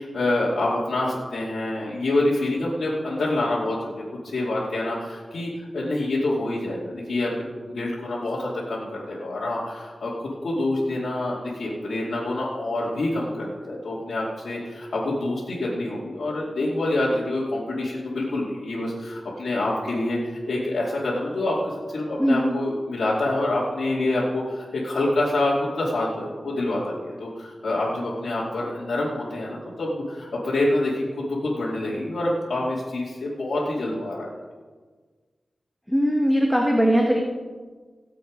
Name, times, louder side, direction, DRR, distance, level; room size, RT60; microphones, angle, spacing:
voice 1, 0.0-34.4, left 2 dB, 80° left, -8 dB, 2.6 m, -26 dB
voice 2, 35.9-37.2, equal, ahead, 0 dB, 1.5 m, -20 dB
18.0 x 7.7 x 5.2 m, 1.5 s
wide cardioid pair, 70°, 0 cm